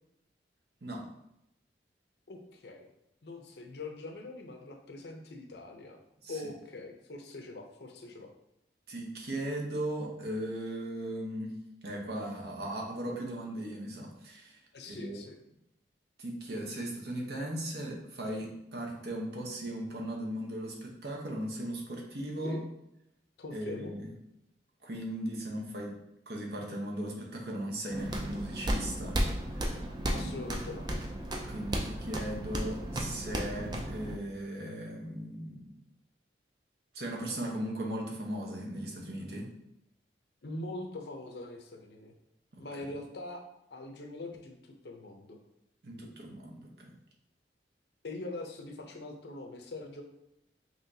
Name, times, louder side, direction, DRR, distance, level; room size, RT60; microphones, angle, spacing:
voice 1, 2.3-2.9 3.2-6.0 6.3-8.3 14.7-15.4 22.4-22.6 23.4-23.9 30.1-30.9 40.4-42.1 42.6-43.4 43.7-45.4 48.0-50.0, left 2 dB, 70° left, 3 dB, 0.7 m, -43 dB
voice 2, 8.9-11.5 11.8-15.2 16.2-22.6 23.5-24.1 24.8-26.0 26.3-29.2 30.1-30.3 31.5-35.7 36.9-39.5 42.5-42.6 45.8-46.9, right 1 dB, 65° right, 0 dB, 0.9 m, -37 dB
sound 1, 27.9-34.2, right 1 dB, 25° right, 0.5 m, -34 dB
5.6 x 3.0 x 2.7 m, 0.82 s
head